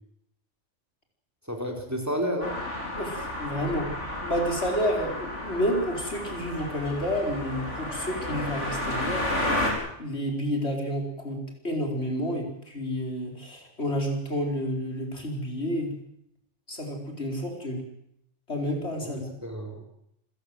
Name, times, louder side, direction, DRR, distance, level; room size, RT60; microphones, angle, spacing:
voice 1, 1.5-2.6 19.0-19.9, equal, 15° right, 2 dB, 4.0 m, -31 dB
sound 1, 2.4-9.7, left 1 dB, 80° left, 5.8 m, -32 dB
voice 2, 3.0-3.9 4.2-9.6 10.0-11.4 11.6-15.9 16.7-17.8 18.5-19.3, equal, 65° left, 2 dB, 5.2 m, -30 dB
28.0 x 15.5 x 7.9 m, 0.75 s
omnidirectional pair, 1.2 m